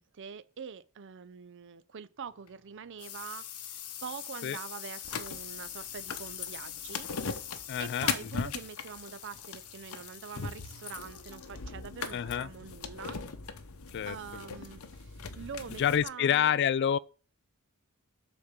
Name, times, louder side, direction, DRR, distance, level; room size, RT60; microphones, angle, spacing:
voice 1, 0.0-3.4 4.0-7.5 7.8-13.2 14.0-16.6, right 6 dB, 55° right, 0.5 m, -44 dB
sound 1, 2.3-13.6, left 10 dB, 85° left, 1.2 m, -45 dB
sound 2, 5.0-16.0, left 5 dB, 70° left, 0.9 m, -39 dB
voice 2, 7.7-8.5 12.1-12.5 13.9-14.2 15.8-17.0, left 9 dB, 50° left, 0.3 m, -28 dB
7.1 x 4.3 x 6.6 m
head